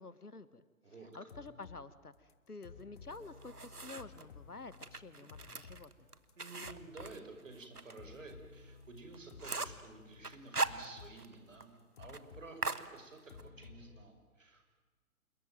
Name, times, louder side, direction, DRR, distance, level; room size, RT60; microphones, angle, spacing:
voice 1, 0.0-0.6 1.1-6.1, left 3 dB, 80° left, 15 dB, 1.8 m, -50 dB
sound 1, 1.1-1.9 2.3-5.9 6.1-7.2 7.6-7.7 8.0-11.2 11.5-12.5 12.8-14.0, left 5 dB, 35° left, 1.6 m, -55 dB
sound 2, 3.1-4.2 4.7-7.9 8.3-8.4 8.8-8.9 9.1-9.9 10.2-11.3 11.6-11.7 12.0-12.2 12.6-13.5, right 3 dB, 90° right, 1.6 m, -40 dB
voice 2, 6.4-14.6, right 3 dB, 55° right, 6 dB, 5.7 m, -52 dB
27.5 x 22.5 x 9.3 m, 1.3 s
figure-of-eight pair, 140°, 45 cm